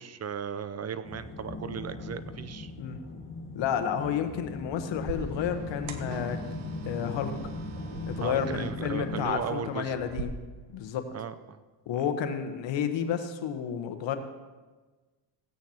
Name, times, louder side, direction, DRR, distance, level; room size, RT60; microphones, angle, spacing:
voice 1, 0.0-2.7 8.2-9.9 11.1-11.6 11.9-12.0, right 7 dB, 35° right, 13 dB, 0.6 m, -36 dB
sound 1, 1.0-9.2, left 2 dB, 25° left, 1.9 m, -39 dB
voice 2, 3.5-6.4 6.8-7.3 8.1-10.3 10.7-11.1 11.9-14.2, left 8 dB, 65° left, 8 dB, 1.2 m, -31 dB
sound 2, 5.0-10.2, right 5 dB, 85° right, 1.1 m, -42 dB
16.5 x 8.9 x 2.9 m, 1.3 s
supercardioid pair, 80°, 48 cm